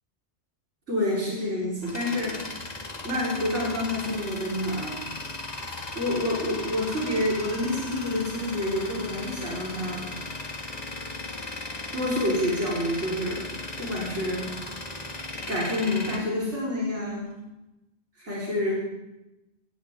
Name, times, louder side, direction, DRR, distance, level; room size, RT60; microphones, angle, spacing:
voice 1, 0.9-2.4 3.0-4.9 5.9-10.0 11.9-13.4 13.8-14.6 15.5-17.3 18.2-18.8, left 1 dB, 90° right, -6 dB, 4.8 m, -28 dB
Tools, 1.4-17.2, left 2 dB, 35° left, 1.8 m, -37 dB
18.0 x 17.5 x 3.7 m, 0.96 s
omnidirectional pair, 1.2 m